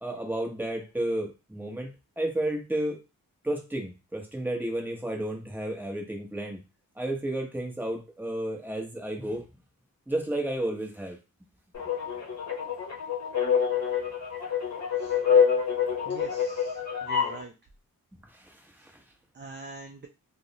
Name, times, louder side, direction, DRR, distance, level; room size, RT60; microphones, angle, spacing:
voice 1, 0.0-1.9 2.2-3.0 3.4-6.6 6.9-9.5 10.1-11.2 18.3-19.0, right 1 dB, 5° right, 0 dB, 0.8 m, -32 dB
sound 1, 11.7-17.4, left 7 dB, 50° left, 0.8 m, -26 dB
voice 2, 16.0-17.5 19.3-20.1, right 3 dB, 30° right, 2 dB, 0.4 m, -44 dB
2.3 x 2.0 x 2.7 m, 0.27 s
cardioid pair, 65°, 35 cm